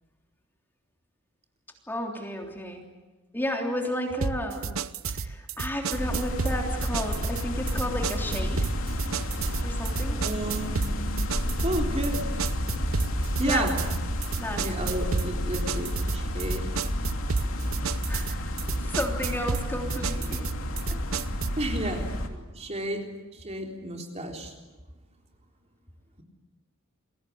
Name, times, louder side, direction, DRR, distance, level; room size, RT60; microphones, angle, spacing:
voice 1, 1.9-2.8 3.3-4.8 5.1-8.7 9.6-10.2 13.4-13.8 14.4-14.6 17.8-20.5 20.9-21.0 21.8-22.0, equal, 10° left, 1 dB, 3.3 m, -33 dB
sound 1, 4.2-21.6, right 5 dB, 80° right, 0.9 m, -33 dB
sound 2, 5.9-22.3, left 1 dB, 75° left, 3.0 m, -30 dB
voice 2, 10.2-10.8 11.6-12.2 13.4-13.8 14.5-16.7 21.6-23.0 23.3-24.5, right 1 dB, 30° right, 2 dB, 3.8 m, -32 dB
29.5 x 22.5 x 8.7 m, 1.1 s
head